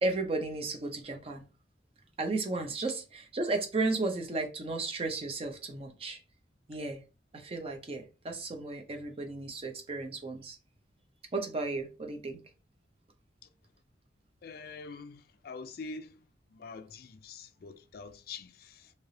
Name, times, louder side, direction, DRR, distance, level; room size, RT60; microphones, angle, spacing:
voice 1, 0.0-1.4 2.2-6.2 6.7-7.0 7.3-10.6 11.3-12.4, right 3 dB, 35° right, 0.5 m, -34 dB
voice 2, 14.4-16.2 16.5-18.9, left 4 dB, 55° left, 0.4 m, -45 dB
3.3 x 2.8 x 2.6 m
head